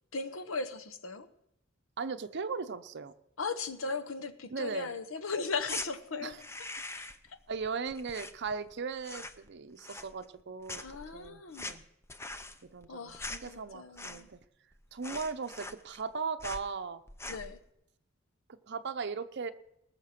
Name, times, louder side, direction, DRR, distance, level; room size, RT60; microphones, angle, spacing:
voice 1, 0.1-1.3 3.4-6.4 7.2-7.4 10.8-11.8 12.9-14.3 17.3-17.6, left 4 dB, 75° left, 10 dB, 1.0 m, -37 dB
voice 2, 2.0-3.1 4.5-4.9 6.2-6.4 7.5-10.8 11.1-11.8 12.7-14.4 14.9-17.0 18.7-19.5, right 5 dB, 55° right, 9 dB, 0.7 m, -38 dB
sound 1, 5.6-5.9 6.3-7.3 7.5-8.7 9.0-9.5 9.8-10.4 10.7-14.4 14.7-14.8 15.0-16.1 16.4-16.7 17.1-17.5, left 2 dB, 15° left, 0.6 m, -42 dB
19.5 x 6.6 x 5.9 m, 0.78 s
head